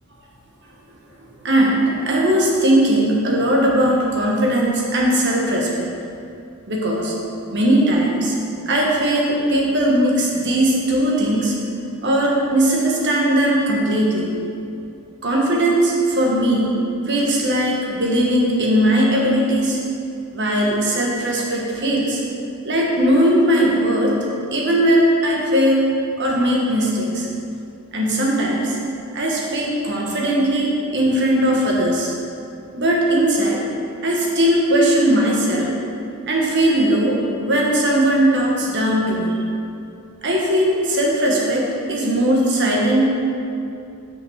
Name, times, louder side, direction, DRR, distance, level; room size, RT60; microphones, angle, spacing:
voice 1, 1.4-5.9 6.7-7.1 7.5-8.3 8.7-11.6 12.0-14.3 15.2-16.7 17.1-19.8 20.3-22.2 22.6-25.9 26.2-27.3 27.9-28.8 29.1-32.1 32.7-33.6 34.0-35.7 36.3-39.3 40.2-43.1, right 1 dB, 55° right, -2 dB, 1.5 m, -19 dB
6.0 x 6.0 x 6.5 m, 2.6 s
head